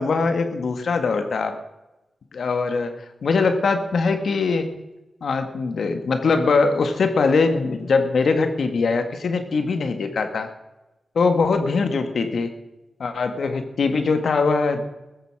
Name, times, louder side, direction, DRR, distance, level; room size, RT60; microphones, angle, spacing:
voice 1, 0.0-1.6 2.3-2.9 3.2-4.7 5.2-10.5 11.2-12.5 13.0-14.8, left 4 dB, 75° left, 7 dB, 1.8 m, -22 dB
15.0 x 14.0 x 4.9 m, 1.0 s
cardioid pair, 55°, 0 cm